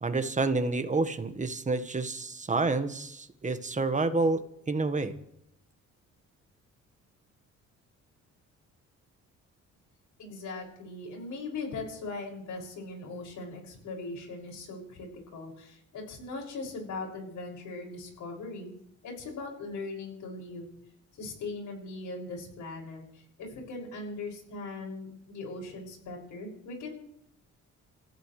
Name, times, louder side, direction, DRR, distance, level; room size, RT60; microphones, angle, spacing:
voice 1, 0.0-5.1, right 3 dB, 25° right, 9 dB, 1.5 m, -29 dB
voice 2, 10.2-18.7 19.0-20.8 21.2-26.9, left 3 dB, 75° left, 0 dB, 6.5 m, -40 dB
29.0 x 15.0 x 3.3 m, 0.76 s
cardioid pair, 90°, 30 cm